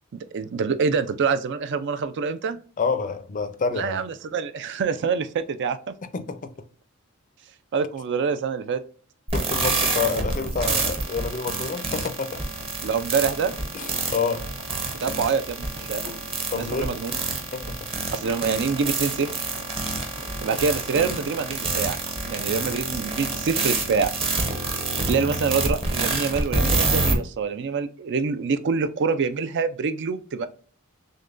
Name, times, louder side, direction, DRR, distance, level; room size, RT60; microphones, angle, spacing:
voice 1, 0.1-2.6 3.7-5.9 7.7-8.8 12.8-13.5 15.0-16.0 16.5-17.1 18.1-19.3 20.4-22.0 22.3-24.1 25.1-30.5, right 5 dB, 55° right, 0.4 m, -26 dB
voice 2, 2.8-4.0 6.1-6.5 9.3-12.4 13.7-14.5 16.5-17.0 17.5-17.9 22.5-22.7, left 5 dB, 35° left, 0.5 m, -28 dB
sound 1, 9.3-27.1, right 3 dB, 25° right, 0.8 m, -27 dB
sound 2, 12.3-27.1, equal, 90° right, 1.3 m, -44 dB
6.4 x 2.2 x 2.5 m
head